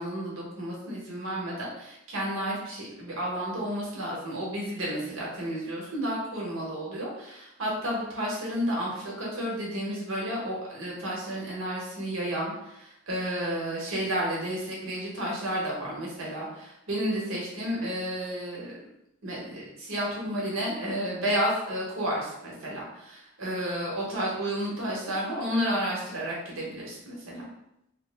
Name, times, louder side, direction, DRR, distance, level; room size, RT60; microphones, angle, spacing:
voice 1, 0.0-18.8 19.2-27.5, equal, 80° right, -4 dB, 1.1 m, -31 dB
3.0 x 2.1 x 3.3 m, 0.82 s
head